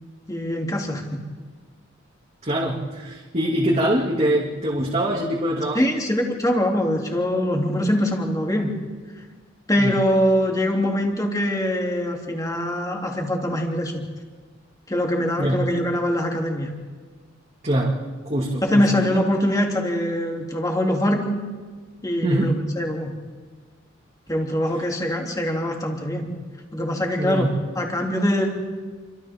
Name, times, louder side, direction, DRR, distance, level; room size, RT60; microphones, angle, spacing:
voice 1, 0.3-1.2 5.7-8.7 9.7-14.0 14.9-16.7 18.6-21.4 22.0-23.1 24.3-26.3 26.7-28.6, equal, 20° left, 0 dB, 3.0 m, -23 dB
voice 2, 2.4-5.9 9.7-10.0 15.4-15.6 17.6-19.0 22.2-22.6 27.2-27.5, right 1 dB, 35° right, -4 dB, 2.4 m, -23 dB
30.0 x 24.5 x 3.7 m, 1.5 s
head